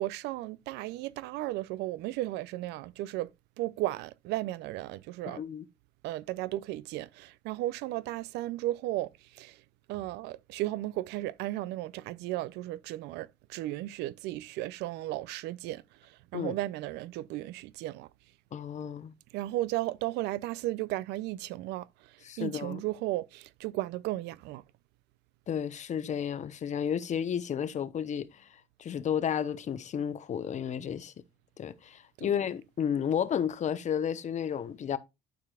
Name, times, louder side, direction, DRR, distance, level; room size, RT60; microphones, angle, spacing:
voice 1, 0.0-3.3 3.6-5.4 6.0-9.6 9.9-18.1 19.3-24.6 32.2-32.3, right 16 dB, 90° right, 0.4 m, -35 dB
voice 2, 5.3-5.6 16.3-16.5 18.5-19.1 22.2-22.8 25.5-28.5 28.8-31.1 31.6-35.0, left 8 dB, 45° left, 0.8 m, -32 dB
12.0 x 4.7 x 2.3 m
cardioid pair, 110°, 17 cm